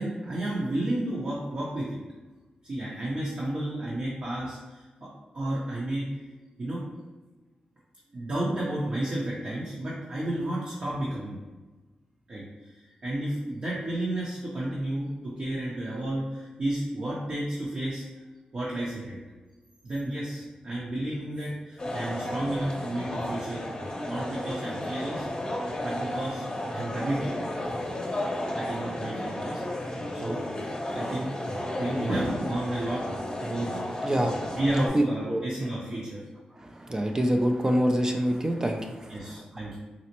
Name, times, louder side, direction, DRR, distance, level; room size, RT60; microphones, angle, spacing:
voice 1, 0.0-2.0 2.6-6.1 6.6-6.8 8.1-11.4 12.3-12.7 13.0-18.0 18.5-19.2 19.8-23.7 24.0-25.2 25.8-26.4 26.7-27.5 28.5-29.6 30.1-30.4 30.9-31.5 31.8-33.1 33.4-33.7 34.6-36.2 39.1-39.8, right 1 dB, 50° right, -6 dB, 0.8 m, -32 dB
sound 1, 21.8-34.9, left 1 dB, 30° left, 0.7 m, -33 dB
voice 2, 34.0-34.5 34.9-35.0 35.3-35.4 36.6-39.1, equal, 25° right, 3 dB, 0.4 m, -25 dB
4.0 x 2.0 x 2.9 m, 1.2 s
cardioid pair, 65°, 3 cm